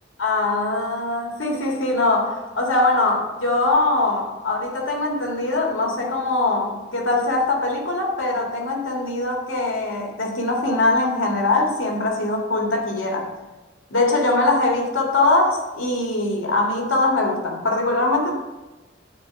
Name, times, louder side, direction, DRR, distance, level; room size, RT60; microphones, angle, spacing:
voice 1, 0.2-13.3 13.9-18.4, left 2 dB, 90° left, 1.9 m, -22 dB
9.4 x 4.4 x 6.8 m
head